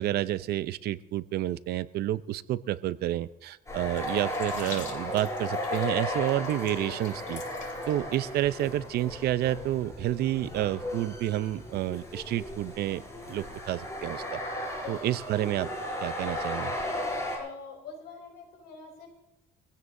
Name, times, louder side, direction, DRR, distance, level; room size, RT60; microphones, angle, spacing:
voice 1, 0.0-7.4 7.9-13.0 13.3-14.4 14.9-15.7 16.0-16.7, right 13 dB, 70° right, 15 dB, 0.6 m, -30 dB
sound 1, 3.7-17.4, left 1 dB, 15° left, 6.8 m, -35 dB
sound 2, 4.0-8.2 8.5-8.6, left 5 dB, 50° left, 2.8 m, -46 dB
voice 2, 14.8-15.2 17.3-19.1, left 5 dB, 75° left, 2 dB, 5.7 m, -44 dB
24.5 x 16.0 x 2.7 m, 0.87 s
cardioid pair, 110°, 17 cm